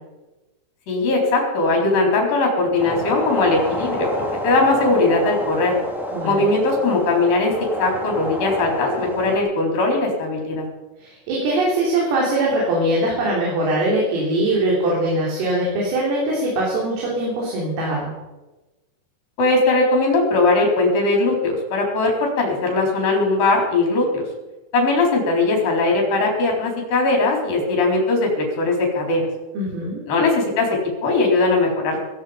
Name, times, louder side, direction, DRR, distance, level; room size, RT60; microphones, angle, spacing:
voice 1, 0.9-5.7 6.2-7.5 7.8-10.7 19.4-24.3 24.7-29.3 30.1-32.0, left 2 dB, 45° left, 0 dB, 5.6 m, -19 dB
sound 1, 2.8-9.4, equal, ahead, 1.2 m, -28 dB
voice 2, 6.1-6.5 11.0-18.1 29.5-30.0, right 1 dB, 90° right, -4 dB, 6.4 m, -22 dB
17.0 x 16.5 x 5.1 m, 1.1 s
omnidirectional pair, 5.7 m